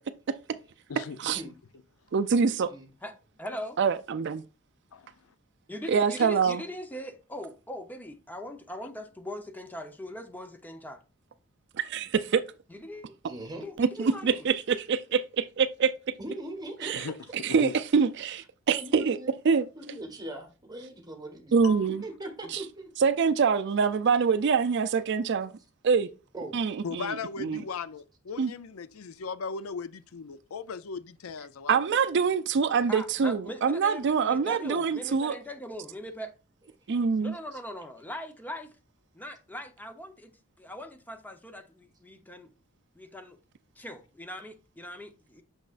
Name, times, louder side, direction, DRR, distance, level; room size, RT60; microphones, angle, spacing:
voice 1, 2.1-2.7 3.8-4.4 5.9-6.6 11.8-12.4 13.8-15.9 16.8-17.1 17.4-19.2 19.4-19.6 21.5-22.0 22.5-22.6 23.0-25.5 25.8-26.1 26.5-27.1 27.4-27.6 28.4-28.5 31.7-35.3 36.9-37.3, right 5 dB, 55° right, 0.4 m, -25 dB
voice 2, 3.4-3.8 5.7-11.0 12.7-13.1 13.6-14.5 32.9-36.3 37.2-38.7 39.1-40.3 40.6-42.5 42.9-43.4 43.8-45.4, equal, 10° left, 0.8 m, -40 dB
voice 3, 4.9-5.3 6.2-6.5 16.9-17.2 17.5-17.8 21.6-21.9 26.8-32.0, left 5 dB, 85° left, 0.5 m, -38 dB
voice 4, 13.1-13.6 16.2-17.0 18.7-19.3 19.8-21.5 22.0-22.9 26.3-26.6, right 1 dB, 20° right, 1.5 m, -40 dB
6.4 x 6.1 x 2.5 m
head